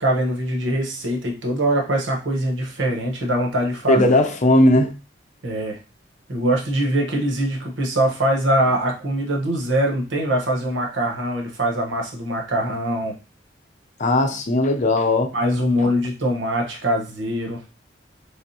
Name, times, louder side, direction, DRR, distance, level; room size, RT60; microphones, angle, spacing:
voice 1, 0.0-4.0 5.4-5.8 6.3-13.1 15.3-17.6, right 1 dB, 80° right, 1.0 m, -22 dB
voice 2, 3.9-4.9 14.0-15.3, left 1 dB, 40° left, 0.6 m, -17 dB
3.4 x 3.4 x 2.8 m
head